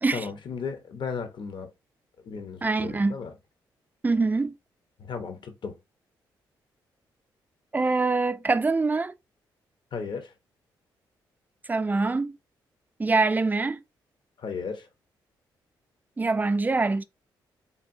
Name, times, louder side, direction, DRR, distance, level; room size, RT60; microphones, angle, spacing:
voice 1, 0.1-1.7 2.2-3.3 5.0-5.8 9.9-10.3 14.4-14.9, left 5 dB, 60° left, 0.7 m, -35 dB
voice 2, 2.6-3.2 4.0-4.6 7.7-9.1 11.7-12.4 13.0-13.8 16.2-17.0, right 3 dB, 20° right, 0.3 m, -24 dB
3.5 x 2.3 x 2.5 m
supercardioid pair, 50°, 9 cm